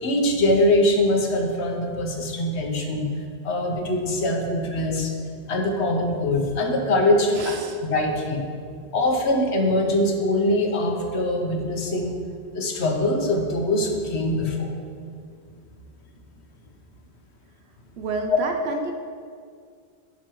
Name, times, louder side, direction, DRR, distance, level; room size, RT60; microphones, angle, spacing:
voice 1, 0.0-3.1 3.4-5.1 5.5-7.4 7.8-8.4 8.9-12.2 12.5-14.7, left 1 dB, 80° left, 2 dB, 1.2 m, -23 dB
voice 2, 7.3-7.8 18.0-18.9, right 4 dB, 75° right, 4 dB, 0.9 m, -30 dB
11.5 x 5.3 x 3.1 m, 2.1 s
omnidirectional pair, 1.1 m